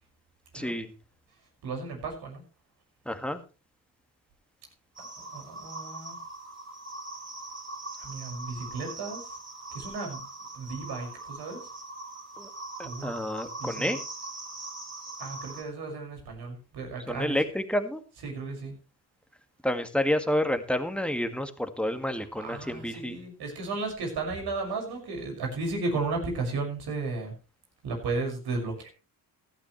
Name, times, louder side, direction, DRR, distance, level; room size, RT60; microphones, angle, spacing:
voice 1, 0.5-0.9 3.1-3.4 12.4-12.5 12.8-14.0 17.1-18.0 19.6-23.2, left 1 dB, 5° left, 8 dB, 2.0 m, -29 dB
voice 2, 1.6-2.4 5.0-6.2 8.0-9.2 9.7-10.2 10.5-11.6 12.8-13.1 13.6-13.9 15.2-17.4 18.2-18.8 22.2-27.3 27.8-28.9, right 3 dB, 70° right, 2 dB, 6.1 m, -34 dB
sound 1, 5.0-15.6, right 2 dB, 30° right, 5.0 m, -41 dB
16.0 x 12.0 x 3.3 m, 0.33 s
supercardioid pair, 65°, 40 cm